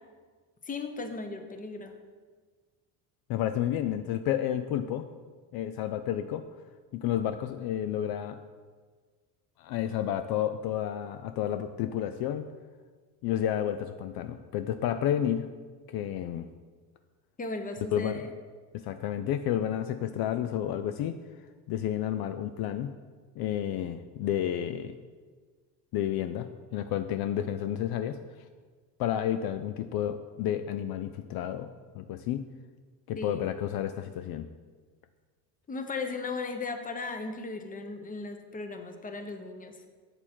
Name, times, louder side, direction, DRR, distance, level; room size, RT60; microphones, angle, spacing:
voice 1, 0.6-2.0 17.4-18.3 33.2-33.5 35.7-39.8, left 3 dB, 20° left, 6 dB, 0.8 m, -36 dB
voice 2, 3.3-5.1 5.5-6.4 6.9-8.4 9.6-12.5 13.2-15.5 15.9-16.5 17.9-18.2 18.7-21.2 21.7-22.9 23.4-24.9 25.9-28.2 29.0-31.7 31.9-32.4 33.1-34.5, left 10 dB, 60° left, 10 dB, 0.5 m, -31 dB
7.3 x 6.8 x 4.4 m, 1.5 s
cardioid pair, 110°, 43 cm